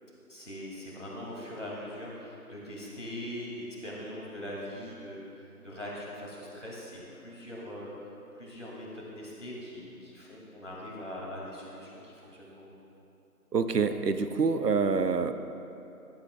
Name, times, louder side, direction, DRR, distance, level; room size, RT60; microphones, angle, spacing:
voice 1, 0.3-5.3 5.6-7.9 8.4-12.8, left 1 dB, 50° left, -4 dB, 2.3 m, -41 dB
voice 2, 13.5-15.3, right 5 dB, 85° right, 10 dB, 0.7 m, -26 dB
13.5 x 9.4 x 2.2 m, 2.9 s
figure-of-eight pair, 175°, 47 cm